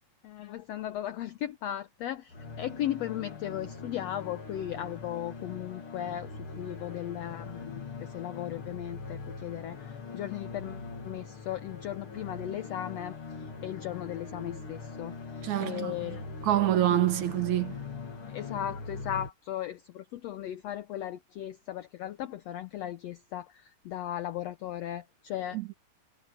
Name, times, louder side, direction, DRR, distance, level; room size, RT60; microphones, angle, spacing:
voice 1, 0.2-13.1 13.6-15.1 15.6-16.2 16.5-17.1 18.3-25.6, left 12 dB, 85° left, 1.5 m, -37 dB
sound 1, 2.3-19.3, left 4 dB, 40° left, 3.2 m, -42 dB
voice 2, 15.4-16.2 16.4-17.8 25.5-25.7, right 13 dB, 65° right, 2.4 m, -27 dB
omnidirectional pair, 3.9 m